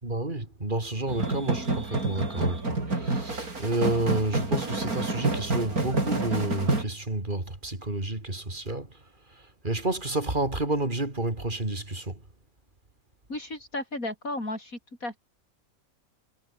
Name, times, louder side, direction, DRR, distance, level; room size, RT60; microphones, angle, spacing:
voice 1, 0.0-2.6 3.0-8.9 9.6-12.1, right 2 dB, 35° right, 4.2 m, -30 dB
sound 1, 1.1-6.8, right 2 dB, 80° right, 5.4 m, -28 dB
voice 2, 13.3-15.2, left 1 dB, 70° left, 7.9 m, -34 dB
omnidirectional pair, 1.5 m